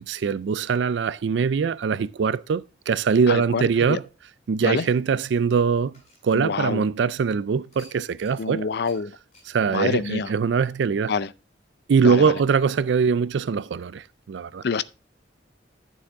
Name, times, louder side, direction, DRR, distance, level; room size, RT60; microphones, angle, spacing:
voice 1, 0.0-4.0 4.5-5.9 6.2-8.7 9.5-11.1 11.9-14.6, right 5 dB, 70° right, 0.4 m, -22 dB
voice 2, 3.3-4.0 4.6-4.9 6.3-6.9 8.4-9.2 9.7-10.3 11.1-11.3 12.0-12.4 14.6-14.8, left 5 dB, 60° left, 0.5 m, -27 dB
sound 1, 4.6-7.0 7.7-8.5 8.8-9.0 9.3-9.5, left 1 dB, 40° left, 5.7 m, -55 dB
11.0 x 7.0 x 3.5 m
head